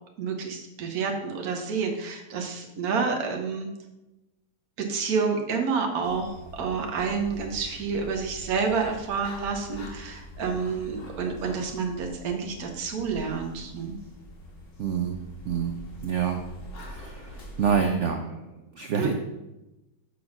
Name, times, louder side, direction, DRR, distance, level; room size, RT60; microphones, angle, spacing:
voice 1, 0.2-3.7 4.8-13.9 18.9-19.1, right 5 dB, 60° right, 2 dB, 1.5 m, -29 dB
sound 1, 6.0-17.9, equal, 85° left, 2.2 m, -44 dB
voice 2, 14.8-15.2 15.5-15.7 16.0-16.4 16.8-18.3 18.8-19.1, right 7 dB, 75° right, 4 dB, 0.6 m, -27 dB
6.5 x 3.9 x 5.9 m, 0.98 s
omnidirectional pair, 1.9 m